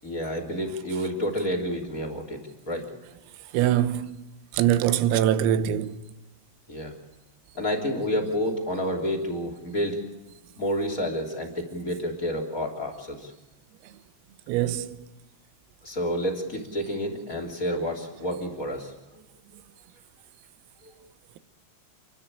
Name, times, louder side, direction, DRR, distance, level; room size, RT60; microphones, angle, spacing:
voice 1, 0.0-2.4 2.7-2.9 6.7-6.9 7.5-10.0 10.6-13.3 15.8-18.9 20.8-20.9, equal, 20° left, 2.5 m, -29 dB
voice 2, 3.5-4.2 4.5-6.1 14.5-15.0, right 11 dB, 85° right, 3.8 m, -23 dB
29.0 x 13.0 x 8.7 m
omnidirectional pair, 6.0 m